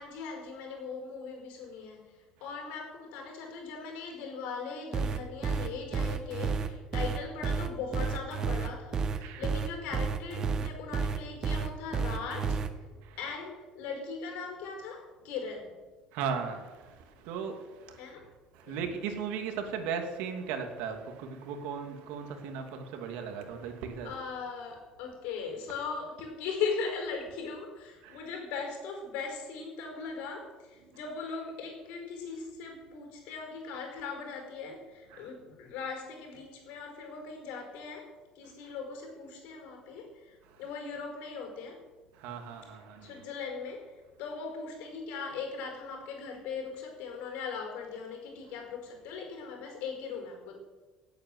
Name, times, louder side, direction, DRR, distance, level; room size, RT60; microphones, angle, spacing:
voice 1, 0.0-12.6 13.2-15.8 18.0-18.3 18.6-18.9 24.0-38.1 38.3-41.8 43.0-43.9 44.2-50.6, left 5 dB, 75° left, 5.0 m, -39 dB
sound 1, 4.9-12.7, right 5 dB, 30° right, 1.1 m, -30 dB
voice 2, 16.1-18.1 18.5-24.1 28.0-28.2 35.1-35.3 42.2-43.2, right 6 dB, 80° right, 2.4 m, -37 dB
17.5 x 8.7 x 7.9 m
cardioid pair, 165°, 2 cm